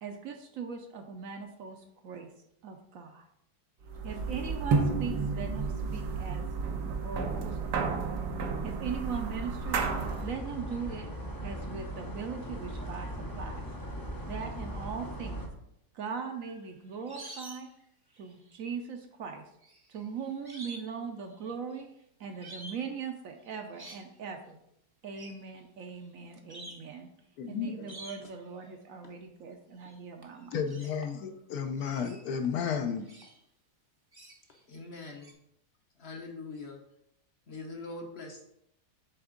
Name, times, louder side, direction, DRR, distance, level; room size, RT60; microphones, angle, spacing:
voice 1, 0.0-2.3 2.6-3.3 4.0-6.5 6.9-8.1 8.6-9.8 10.2-11.1 11.4-13.1 13.4-13.6 14.2-15.4 15.9-17.7 18.2-19.4 19.9-21.9 22.2-24.6 25.0-27.1 27.5-30.5, right 6 dB, 65° right, 5 dB, 0.9 m, -40 dB
sound 1, 3.9-10.4, right 4 dB, 85° right, 1.4 m, -32 dB
sound 2, 9.6-15.5, equal, 25° left, 0.4 m, -39 dB
sound 3, 16.3-17.8 18.1-18.7 19.6-20.9 21.2-21.8 22.4-22.9 23.4-24.1 25.1-25.4 26.0-26.1 26.5-26.9 27.9-28.4 29.8-30.0 30.2-31.3 31.8-33.4 34.1-34.6 35.2-35.3, right 1 dB, 25° right, 0.5 m, -48 dB
voice 2, 27.4-27.9 30.5-33.1, left 7 dB, 70° left, 7 dB, 1.0 m, -33 dB
voice 3, 34.7-35.3 36.0-36.8 37.5-38.4, left 3 dB, 50° left, 1 dB, 0.9 m, -43 dB
7.8 x 3.5 x 3.7 m, 0.76 s
omnidirectional pair, 1.7 m